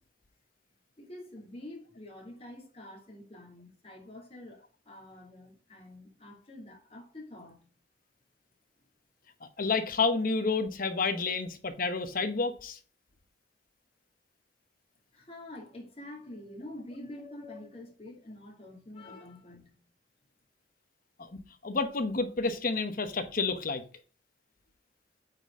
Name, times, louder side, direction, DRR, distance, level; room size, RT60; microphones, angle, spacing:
voice 1, 1.0-7.7 15.1-19.8, left 1 dB, 35° left, 2.4 m, -47 dB
voice 2, 9.6-12.8 21.2-21.3 21.6-23.8, left 4 dB, 50° left, 1.0 m, -29 dB
8.8 x 4.3 x 3.6 m
head